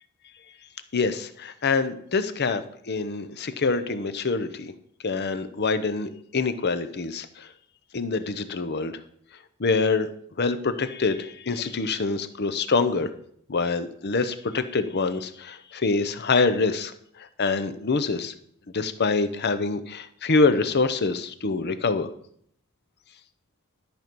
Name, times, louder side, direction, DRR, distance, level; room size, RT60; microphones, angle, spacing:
voice 1, 0.9-4.7 5.0-7.5 7.9-8.9 9.6-10.1 10.4-13.1 13.5-16.9 17.2-18.3 18.7-22.1, left 4 dB, 50° left, 11 dB, 0.8 m, -25 dB
12.0 x 5.2 x 6.1 m, 0.66 s
head